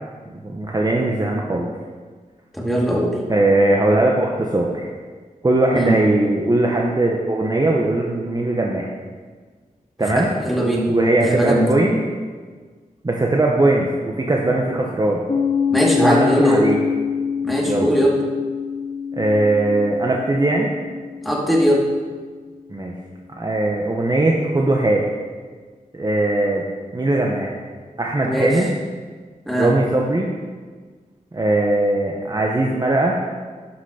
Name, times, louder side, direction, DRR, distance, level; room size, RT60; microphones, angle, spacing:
voice 1, 0.3-1.7 3.3-4.9 5.4-8.9 10.0-10.3 10.9-12.0 13.0-15.2 16.0-16.8 17.6-17.9 19.2-20.7 22.7-22.9 23.4-25.0 25.9-26.7 26.9-27.5 28.0-28.7 29.6-30.3 31.3-33.2, right 2 dB, 30° right, -1 dB, 1.1 m, -19 dB
voice 2, 2.5-3.2 5.7-6.0 10.0-10.9 11.2-11.7 15.7-16.7 17.4-18.2 21.2-21.9 28.2-28.6 29.5-29.7, equal, ahead, -3 dB, 2.4 m, -20 dB
Piano, 15.3-22.5, left 6 dB, 40° left, 0.9 m, -25 dB
12.0 x 6.0 x 5.8 m, 1.5 s
wide cardioid pair, 90°, 14 cm